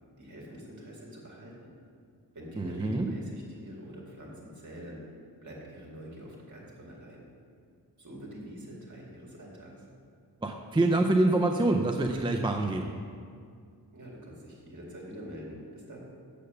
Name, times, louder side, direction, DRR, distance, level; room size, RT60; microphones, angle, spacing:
voice 1, 0.2-1.7 2.3-5.0 5.4-7.2 8.0-9.9 13.9-16.1, equal, 45° right, -3 dB, 2.1 m, -45 dB
voice 2, 2.6-3.1 10.4-12.9, right 2 dB, 15° right, 2 dB, 0.4 m, -26 dB
6.8 x 6.7 x 6.6 m, 2.2 s
wide cardioid pair, 150°, 41 cm